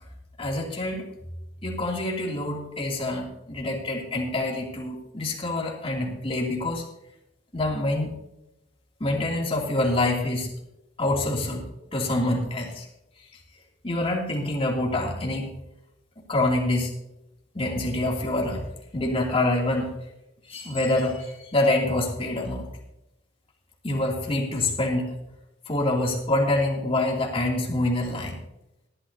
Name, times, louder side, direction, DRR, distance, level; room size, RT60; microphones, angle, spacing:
voice 1, 0.4-1.0 1.6-6.8 7.5-8.1 9.0-10.5 11.0-11.6 11.9-12.9 13.8-15.5 16.3-16.9 17.5-18.7 18.9-19.9 20.5-22.7 23.8-25.2 25.7-28.4, left 2 dB, 30° left, -1 dB, 2.7 m, -26 dB
18.5 x 12.0 x 2.7 m, 0.88 s
head